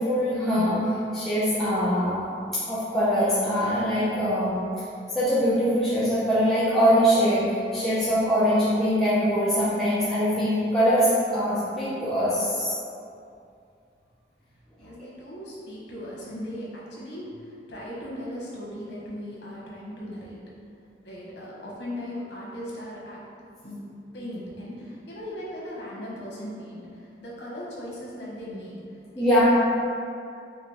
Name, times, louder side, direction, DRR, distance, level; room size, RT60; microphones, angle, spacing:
voice 1, 0.0-2.3 2.7-4.6 5.1-12.7 29.2-29.5, equal, ahead, -12 dB, 0.6 m, -23 dB
voice 2, 14.8-20.4 21.0-23.2 23.6-23.8 24.1-29.5, equal, 80° left, -6 dB, 1.2 m, -38 dB
5.0 x 2.4 x 3.5 m, 2.5 s
head